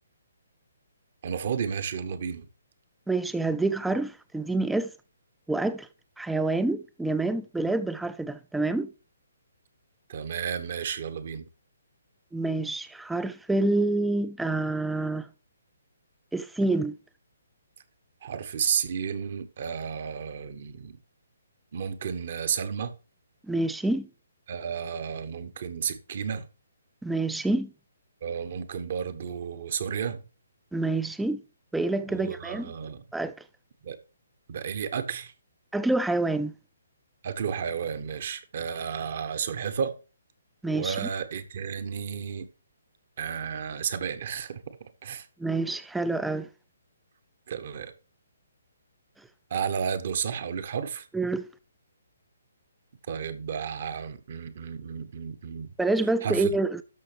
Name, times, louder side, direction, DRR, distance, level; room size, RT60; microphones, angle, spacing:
voice 1, 1.2-2.5 10.1-11.4 18.2-21.0 21.7-22.9 24.5-26.5 28.2-30.2 32.1-33.0 33.8-34.0 34.5-35.3 37.2-40.0 40.7-42.5 43.2-44.6 45.0-45.2 47.5-47.9 49.5-51.1 53.1-55.7 56.2-56.5, right 7 dB, 45° right, 1.1 m, -32 dB
voice 2, 3.1-4.9 5.5-5.9 6.2-8.9 12.3-15.3 16.3-17.0 23.5-24.1 27.0-27.7 30.7-31.4 31.7-32.7 33.1-33.3 35.7-36.5 40.6-41.1 45.4-46.5 51.1-51.5 55.8-56.8, right 2 dB, 5° right, 0.4 m, -27 dB
12.5 x 5.8 x 3.3 m
figure-of-eight pair, 135°, 0 cm